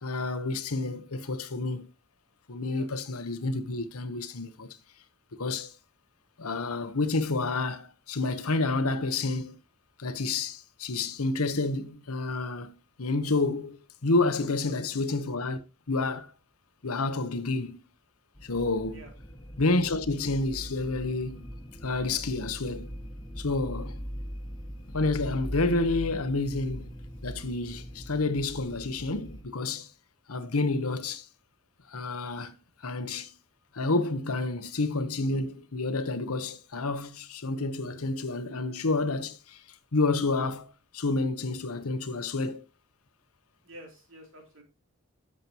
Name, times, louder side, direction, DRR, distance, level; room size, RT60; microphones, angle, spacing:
voice 1, 0.0-1.9 2.5-4.7 5.4-5.7 6.4-9.6 10.0-15.6 15.9-16.3 16.8-17.8 18.4-19.0 19.6-21.4 21.8-22.9 23.4-24.0 24.9-26.9 27.2-29.9 30.3-31.3 31.9-32.5 32.8-33.3 33.7-39.6 39.9-42.6, left 3 dB, 90° left, 1.1 m, -29 dB
sound 1, 18.4-29.4, equal, 20° left, 1.5 m, -41 dB
voice 2, 43.6-44.6, equal, 60° right, 3.2 m, -49 dB
11.0 x 7.6 x 3.0 m
head